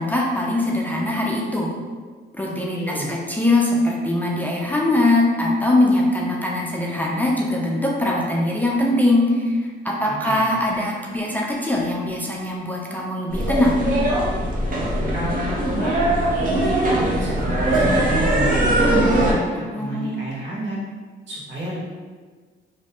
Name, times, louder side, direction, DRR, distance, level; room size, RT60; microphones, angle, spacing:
voice 1, 0.0-1.7 2.3-9.6 9.8-13.8 19.5-20.1, left 1 dB, 10° left, -2 dB, 0.4 m, -22 dB
voice 2, 2.7-3.1 10.0-10.6 15.1-19.4 19.7-20.8 21.3-21.8, equal, 70° right, -7 dB, 1.3 m, -31 dB
sound 1, 13.3-19.3, right 1 dB, 45° right, 0.7 m, -20 dB
3.1 x 2.6 x 2.7 m, 1.5 s
cardioid pair, 90°, 20 cm